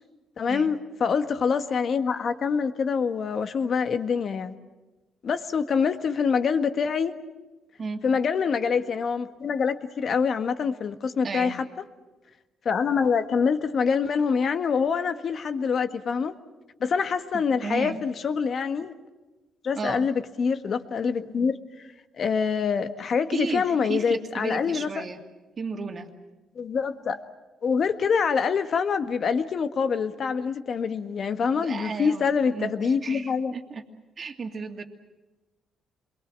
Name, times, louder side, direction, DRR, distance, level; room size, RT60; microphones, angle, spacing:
voice 1, 0.4-4.5 5.2-7.1 8.0-11.6 12.7-16.3 16.8-18.9 19.6-21.6 22.2-25.0 26.6-27.2 27.6-33.5, left 6 dB, 55° left, 8 dB, 1.6 m, -25 dB
voice 2, 11.2-11.5 17.3-18.0 19.8-20.1 23.3-25.2 25.6-26.1 31.6-33.8 34.2-34.8, right 4 dB, 45° right, 4 dB, 2.5 m, -34 dB
28.0 x 22.5 x 7.5 m, 1.2 s
cardioid pair, 90°, 0 cm